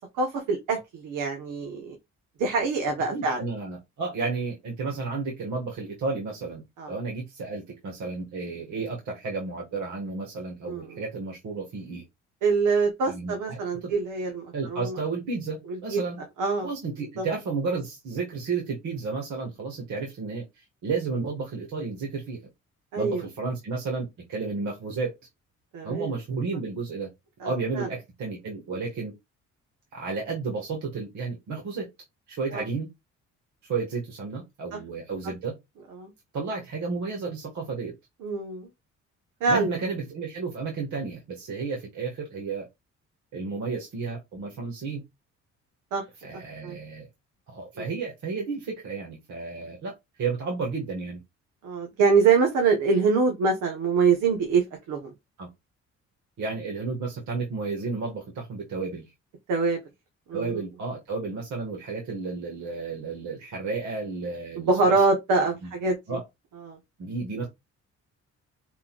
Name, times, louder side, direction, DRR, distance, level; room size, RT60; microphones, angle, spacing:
voice 1, 0.2-2.0 2.4-3.4 6.8-6.9 10.6-10.9 12.4-15.0 15.7-16.0 16.4-16.7 17.2-17.3 22.9-23.2 25.7-26.1 27.4-27.9 32.5-32.6 34.7-34.8 36.0-36.1 38.2-38.7 39.4-39.7 45.9-46.0 46.6-46.8 47.8-47.9 51.6-55.1 59.5-59.8 60.3-60.6 64.6-66.2 66.6-66.8, right 4 dB, 90° right, 1.4 m, -24 dB
voice 2, 3.1-12.0 13.1-13.9 14.5-16.2 16.6-22.4 23.0-25.1 25.8-27.1 27.4-29.1 29.9-31.9 32.3-32.9 33.6-35.5 36.3-37.9 39.5-42.7 43.3-45.0 46.2-47.1 47.5-49.9 50.2-51.2 55.4-55.5 56.4-59.1 60.3-65.1 65.6-65.7 66.1-66.2 67.0-67.5, right 4 dB, 70° right, 2.0 m, -32 dB
5.4 x 3.8 x 2.5 m
cardioid pair, 90°, 30 cm